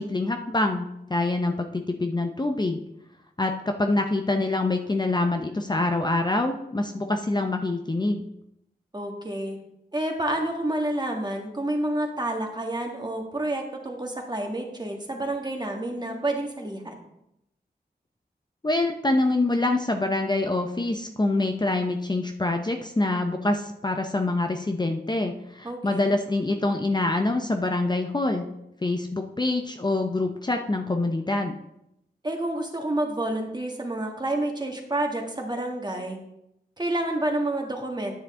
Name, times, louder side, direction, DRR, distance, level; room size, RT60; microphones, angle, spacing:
voice 1, 0.0-2.8 3.4-8.2 18.6-28.4 28.8-31.6, left 2 dB, 25° left, 4 dB, 0.7 m, -25 dB
voice 2, 8.9-9.6 9.9-17.0 25.6-26.2 32.2-36.2 36.8-38.1, right 1 dB, 25° right, 1 dB, 1.8 m, -29 dB
10.0 x 6.5 x 3.7 m, 0.82 s
cardioid pair, 60°, 17 cm